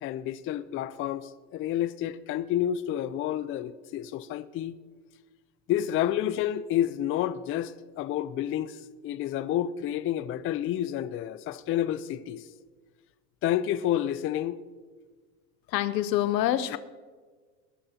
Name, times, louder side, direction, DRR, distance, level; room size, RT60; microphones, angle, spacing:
voice 1, 0.0-4.7 5.7-12.5 13.4-14.6 16.7-16.8, left 11 dB, 30° left, 0.4 m, -29 dB
voice 2, 15.7-16.8, left 12 dB, 85° left, 0.8 m, -26 dB
20.5 x 11.0 x 2.9 m
hypercardioid pair, 100°, 48 cm